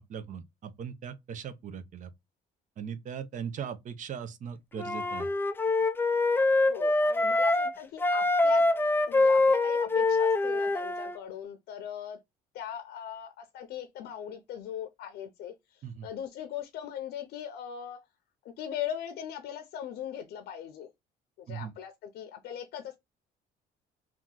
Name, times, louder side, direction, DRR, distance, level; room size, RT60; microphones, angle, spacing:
voice 1, 0.1-2.1 2.8-5.3 15.8-16.1 21.5-21.7, right 7 dB, 50° right, 0.6 m, -39 dB
Wind instrument woodwind instrument, 4.8-7.7 8.0-11.2, left 2 dB, 10° left, 0.3 m, -25 dB
voice 2, 6.6-8.7 9.1-12.2 12.5-18.0 18.6-20.9 21.4-23.0, left 9 dB, 75° left, 0.6 m, -39 dB
2.9 x 2.3 x 3.7 m
cardioid pair, 110°, 17 cm